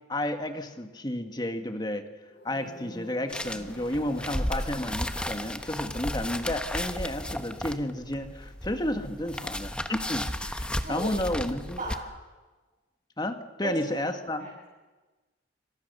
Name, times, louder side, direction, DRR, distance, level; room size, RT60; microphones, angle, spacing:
voice 1, 0.1-2.1 2.4-11.8 13.2-14.5, left 1 dB, 20° left, 7 dB, 1.8 m, -32 dB
sound 1, 2.2-10.6 10.9-11.3, left 1 dB, 75° left, 6.5 m, -51 dB
sound 2, 3.3-12.0, left 1 dB, 5° left, 1.1 m, -34 dB
voice 2, 13.6-14.1 14.4-14.7, equal, 40° right, -6 dB, 7.8 m, -35 dB
27.5 x 25.0 x 6.9 m, 1.2 s
head